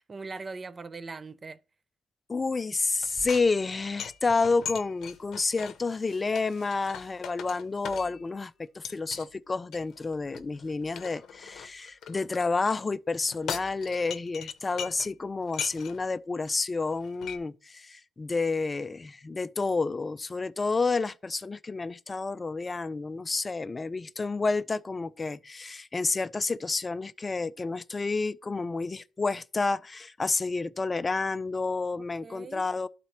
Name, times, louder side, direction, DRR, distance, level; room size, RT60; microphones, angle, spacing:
voice 1, 0.0-1.6 32.0-32.6, right 4 dB, 35° right, 0.5 m, -41 dB
voice 2, 2.3-32.9, left 3 dB, 25° left, 0.4 m, -30 dB
sound 1, 3.0-8.4 8.8-9.3 9.7-12.4 13.1-15.1 15.4-16.1 16.5-16.6 16.8-17.4, left 8 dB, 70° left, 0.7 m, -40 dB
11.5 x 4.1 x 2.9 m
cardioid pair, 90°, 0 cm